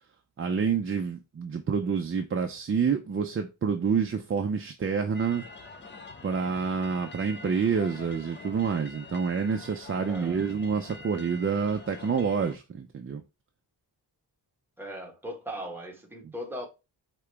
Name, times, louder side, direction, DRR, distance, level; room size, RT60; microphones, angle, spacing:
voice 1, 0.4-5.4 6.2-13.2 16.2-16.3, right 6 dB, 30° right, 0.4 m, -28 dB
sound 1, 5.1-12.6, left 2 dB, 25° left, 0.6 m, -45 dB
voice 2, 10.1-10.5 14.8-16.7, equal, 5° right, 1.2 m, -38 dB
4.8 x 3.0 x 3.3 m
wide cardioid pair, 135°, 41 cm